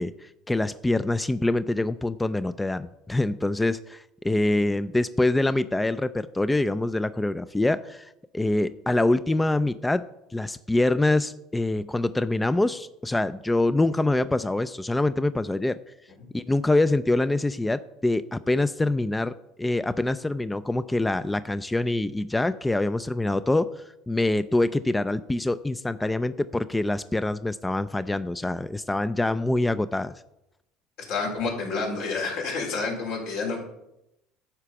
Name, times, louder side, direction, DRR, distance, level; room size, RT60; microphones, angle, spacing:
voice 1, 0.0-10.1 10.3-15.8 16.3-30.1, left 2 dB, 10° left, 14 dB, 0.4 m, -25 dB
voice 2, 31.1-33.6, left 4 dB, 75° left, -2 dB, 4.2 m, -29 dB
11.5 x 4.9 x 6.9 m, 0.87 s
supercardioid pair, 85°, 0 cm